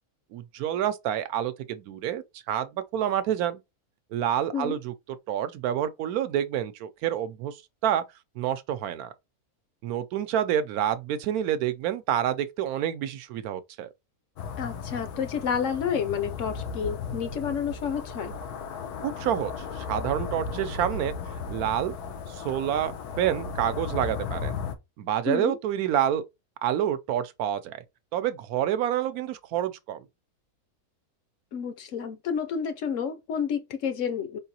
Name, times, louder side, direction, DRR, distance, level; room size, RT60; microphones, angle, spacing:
voice 1, 0.3-3.6 4.1-4.9 5.3-7.5 7.8-8.0 8.4-9.1 9.8-13.9 19.0-21.1 21.5-21.9 22.3-24.5 25.0-26.2 26.6-27.8 28.1-30.1, right 10 dB, 75° right, 1.0 m, -28 dB
sound 1, 14.4-24.8, left 5 dB, 90° left, 1.2 m, -35 dB
voice 2, 14.6-18.3 25.3-25.6 31.5-34.4, left 7 dB, 65° left, 0.9 m, -30 dB
4.6 x 3.7 x 2.8 m
omnidirectional pair, 1.6 m